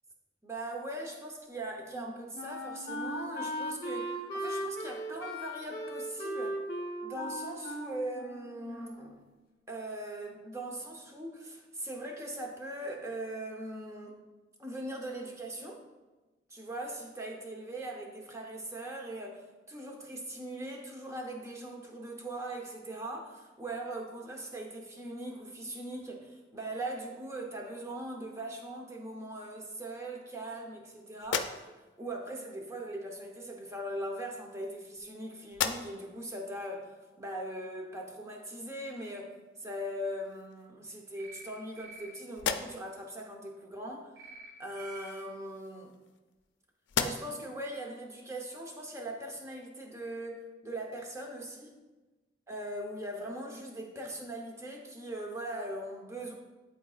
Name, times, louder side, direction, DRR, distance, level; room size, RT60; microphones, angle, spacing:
voice 1, 0.4-6.6 7.0-9.2 9.7-14.2 14.6-15.8 16.5-39.3 39.6-44.1 44.6-45.9 47.0-51.8 52.5-56.3, right 1 dB, 15° right, 1 dB, 0.8 m, -40 dB
Wind instrument woodwind instrument, 1.9-9.2, equal, 55° left, 0.9 m, -38 dB
sound 1, 31.2-32.0 33.2-33.3 34.3-35.1 35.5-36.2 36.7-36.8 39.5-39.6 40.0-40.7 41.3-42.0 42.3-43.0 45.0-46.5 46.9-47.5, left 7 dB, 90° left, 0.4 m, -37 dB
sound 2, 41.2-41.5 41.8-42.1 44.2-44.5 44.8-45.1, right 3 dB, 80° right, 1.8 m, -48 dB
10.5 x 4.0 x 2.4 m, 1.2 s
head